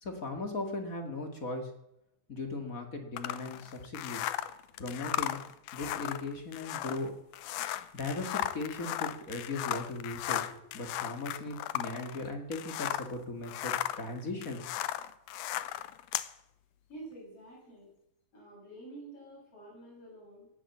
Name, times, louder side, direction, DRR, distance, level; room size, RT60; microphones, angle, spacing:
voice 1, 0.0-1.7 2.3-4.3 4.8-5.4 5.7-7.1 7.9-14.7, left 2 dB, 30° left, 4 dB, 2.0 m, -38 dB
sound 1, 3.2-13.2 13.4-16.3, left 13 dB, 90° left, 2.2 m, -36 dB
voice 2, 16.9-17.9 18.3-20.5, right 2 dB, 50° left, -4 dB, 8.9 m, -49 dB
18.0 x 9.1 x 7.3 m, 0.83 s
omnidirectional pair, 3.5 m